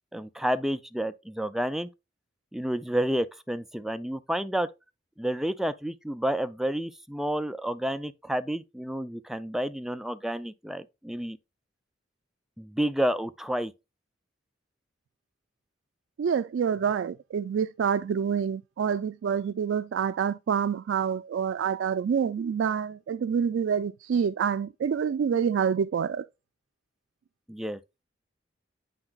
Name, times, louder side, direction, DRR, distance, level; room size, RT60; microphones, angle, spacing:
voice 1, 0.1-1.9 2.5-4.7 5.2-11.4 12.6-13.7 27.5-27.8, right 1 dB, ahead, 0.4 m, -30 dB
voice 2, 16.2-26.2, right 7 dB, 85° right, 0.3 m, -27 dB
8.8 x 5.8 x 2.3 m
head